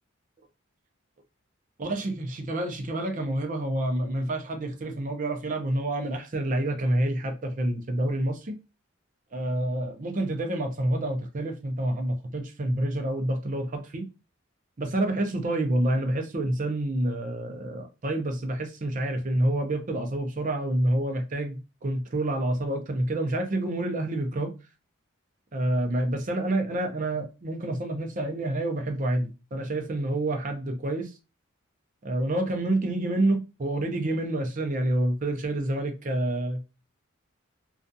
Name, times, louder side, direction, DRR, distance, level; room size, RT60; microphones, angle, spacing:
voice 1, 1.8-8.6 9.3-14.1 14.8-24.5 25.5-31.1 32.0-36.7, right 1 dB, 40° right, 0.5 m, -28 dB
2.4 x 2.3 x 2.5 m
head